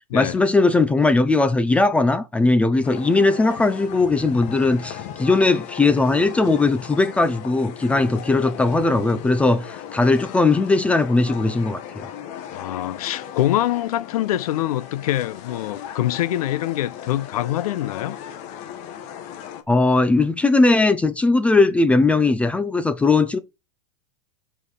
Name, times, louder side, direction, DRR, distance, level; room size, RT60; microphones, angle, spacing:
voice 1, 0.1-12.1 19.7-23.4, left 3 dB, 5° left, 0.5 m, -19 dB
sound 1, 2.8-19.6, left 9 dB, 35° left, 1.7 m, -37 dB
voice 2, 12.5-18.2, left 13 dB, 65° left, 0.9 m, -24 dB
7.7 x 4.9 x 4.9 m
supercardioid pair, 160°, 20 cm